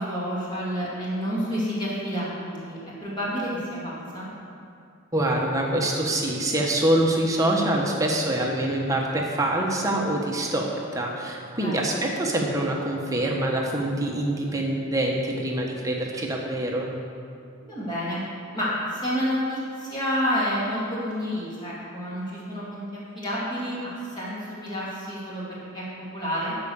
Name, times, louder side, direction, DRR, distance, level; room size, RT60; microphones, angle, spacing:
voice 1, 0.0-4.3 11.6-12.0 17.6-18.2 18.5-26.6, equal, 20° left, -8 dB, 2.4 m, -29 dB
voice 2, 5.1-16.9, right 1 dB, 15° right, -1 dB, 1.1 m, -25 dB
12.5 x 4.9 x 7.0 m, 2.5 s
head